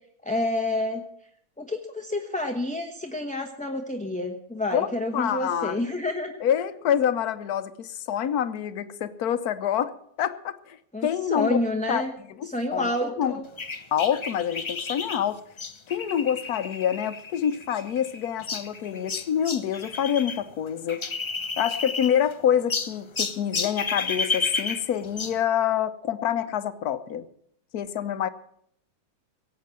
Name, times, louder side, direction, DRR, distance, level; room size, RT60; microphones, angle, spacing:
voice 1, 0.2-1.0 1.6-6.4 10.9-12.1 12.5-13.4, left 1 dB, 5° left, 3 dB, 0.8 m, -29 dB
voice 2, 5.1-5.8 6.4-11.6 11.9-12.0 12.4-13.4 13.9-15.4 15.9-21.0 21.6-27.3 27.7-28.3, left 9 dB, 75° left, 14 dB, 1.3 m, -26 dB
sound 1, 13.6-20.4 20.7-22.3 22.7-25.4, left 4 dB, 40° left, 0.4 m, -32 dB
17.0 x 8.4 x 7.5 m, 0.68 s
omnidirectional pair, 1.6 m